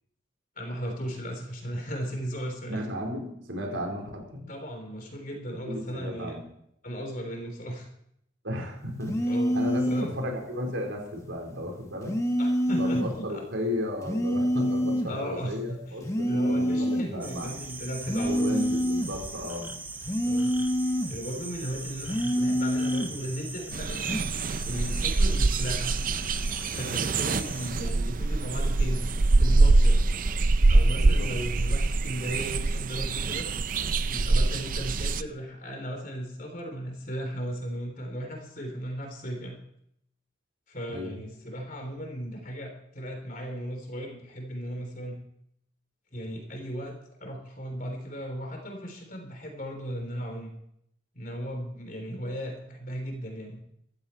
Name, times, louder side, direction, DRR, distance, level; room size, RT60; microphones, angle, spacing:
voice 1, 0.6-2.8 4.5-6.3 6.8-7.9 9.1-9.6 9.9-10.1 12.4-13.4 15.1-18.6 20.2-20.5 21.0-24.1 24.7-26.0 26.7-29.0 29.4-30.0 30.7-33.5 34.1-39.6 40.7-45.2 46.1-50.5 51.2-53.6, equal, 45° left, 3 dB, 3.5 m, -36 dB
voice 2, 2.7-4.5 5.5-6.4 8.4-9.2 9.5-12.2 12.7-17.6 18.2-19.8 27.3-27.5 30.9-31.3 40.9-41.2, left 1 dB, 80° right, 1 dB, 4.2 m, -34 dB
sound 1, 9.0-10.2 12.0-13.2 14.0-15.2 16.0-17.2 18.0-19.2 20.0-21.2 22.0-23.2 24.0-24.3, equal, 15° left, 1.1 m, -27 dB
sound 2, 17.2-27.7, right 3 dB, 10° right, 0.9 m, -40 dB
sound 3, 23.7-35.2, right 3 dB, 45° right, 0.5 m, -24 dB
14.5 x 14.5 x 4.4 m, 0.73 s
head